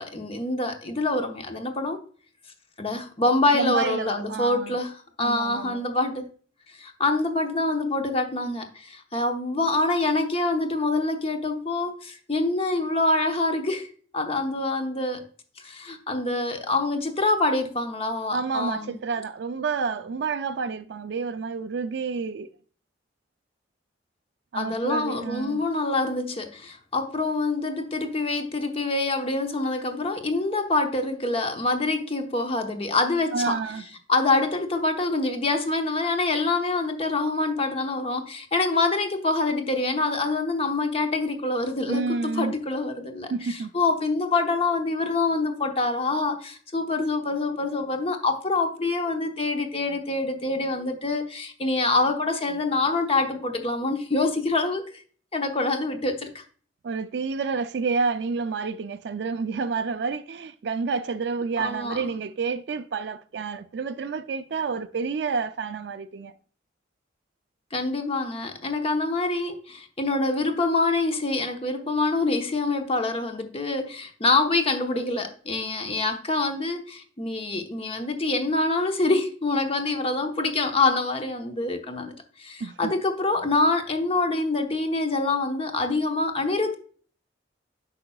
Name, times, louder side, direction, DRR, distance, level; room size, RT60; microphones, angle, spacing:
voice 1, 0.0-2.0 2.8-6.2 6.8-13.9 14.1-15.3 15.6-19.0 24.5-33.6 34.1-54.8 55.3-56.4 61.6-62.1 67.7-82.1 82.4-86.7, left 2 dB, 30° left, 0.9 m, -26 dB
voice 2, 3.5-4.7 5.2-5.8 18.3-22.5 24.5-25.6 33.3-33.8 41.9-42.5 43.3-43.7 56.8-66.3 82.6-82.9, right 4 dB, 65° right, 0.4 m, -29 dB
8.5 x 5.6 x 2.3 m
head